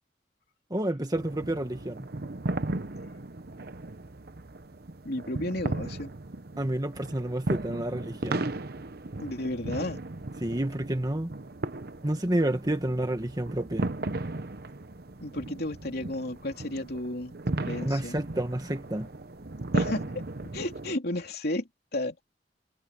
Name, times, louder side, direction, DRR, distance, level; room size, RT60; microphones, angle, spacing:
voice 1, 0.7-2.1 6.6-8.5 10.4-11.3 12.0-13.9 17.8-19.1, right 1 dB, 20° right, 1.5 m, -29 dB
sound 1, 1.1-20.9, right 2 dB, 60° right, 1.0 m, -36 dB
voice 2, 5.0-6.1 9.2-10.0 15.2-17.4 17.6-18.2 19.7-20.2 20.5-22.2, left 1 dB, 60° left, 3.3 m, -33 dB
head